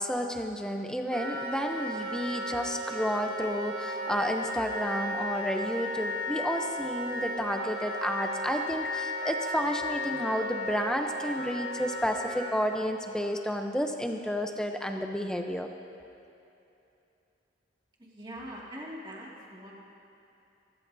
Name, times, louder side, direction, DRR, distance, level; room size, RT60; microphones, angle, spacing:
voice 1, 0.0-15.7, equal, 5° left, 4 dB, 0.7 m, -31 dB
Wind instrument woodwind instrument, 1.1-12.5, equal, 50° right, 1.6 m, -35 dB
voice 2, 18.0-19.7, equal, 25° right, -4 dB, 2.1 m, -42 dB
23.5 x 14.5 x 2.7 m, 2.8 s
head